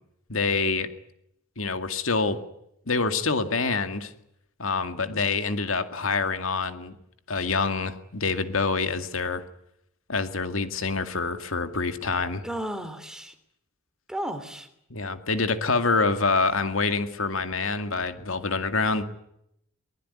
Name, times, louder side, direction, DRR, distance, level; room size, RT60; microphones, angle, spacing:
voice 1, 0.3-0.9 1.6-2.4 2.9-4.1 4.6-7.0 7.3-9.4 10.1-12.4 14.9-19.0, left 4 dB, 80° left, 9 dB, 2.2 m, -26 dB
voice 2, 12.4-13.3 14.1-14.7 18.8-19.0, right 1 dB, 5° right, 9 dB, 2.9 m, -34 dB
24.0 x 20.5 x 9.9 m, 0.77 s
head